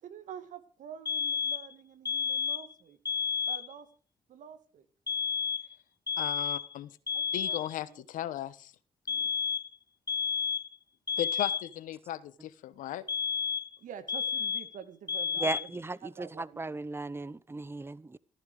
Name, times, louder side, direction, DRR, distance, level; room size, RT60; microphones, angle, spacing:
voice 1, 0.0-3.0 3.5-3.9 4.3-4.9 7.1-8.0 13.8-15.7 16.0-16.6, right 8 dB, 70° right, 2.2 m, -47 dB
sound 1, 1.1-1.7 2.1-2.7 3.1-3.7 5.1-5.7 6.1-6.7 7.1-7.7 9.1-9.7 10.1-10.7 11.1-11.7 13.1-13.8 14.1-14.8 15.1-15.8, left 6 dB, 30° left, 1.2 m, -31 dB
voice 2, 6.2-6.9 7.3-8.7 9.1-9.3 11.2-13.1, left 12 dB, 75° left, 1.2 m, -36 dB
voice 3, 15.4-18.2, right 3 dB, 15° right, 0.9 m, -36 dB
14.5 x 14.5 x 5.0 m
supercardioid pair, 55°, 14 cm